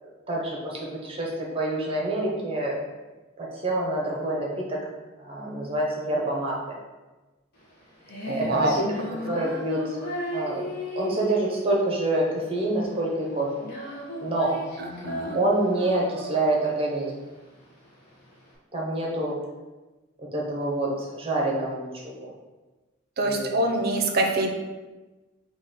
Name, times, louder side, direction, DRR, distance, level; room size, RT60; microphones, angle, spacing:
voice 1, 0.0-2.8 3.4-4.8 5.2-6.6 8.4-8.7 9.2-10.0 10.3-10.6 11.0-13.5 14.2-14.6 15.3-17.1 18.7-19.3 20.3-22.3 23.2-23.6, right 2 dB, 30° right, -3 dB, 1.0 m, -27 dB
Female singing, 7.6-18.5, equal, 55° left, 1.2 m, -36 dB
voice 2, 8.3-8.7 14.8-15.4 23.2-24.5, right 1 dB, 55° right, 3 dB, 0.6 m, -25 dB
4.1 x 2.9 x 4.1 m, 1.2 s
head